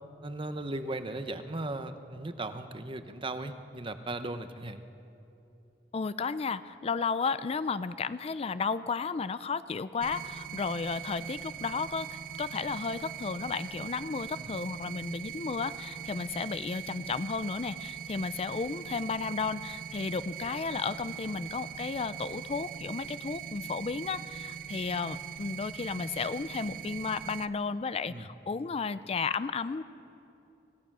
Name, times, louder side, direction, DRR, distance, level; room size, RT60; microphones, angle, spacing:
voice 1, 0.2-4.8 14.4-14.5 28.1-28.2, right 2 dB, 30° right, 9 dB, 0.9 m, -37 dB
voice 2, 5.9-29.8, left 5 dB, 35° left, 14 dB, 0.4 m, -33 dB
sound 1, 10.0-27.5, right 9 dB, 55° right, 0.6 m, -41 dB
26.5 x 16.0 x 6.1 m, 2.8 s
head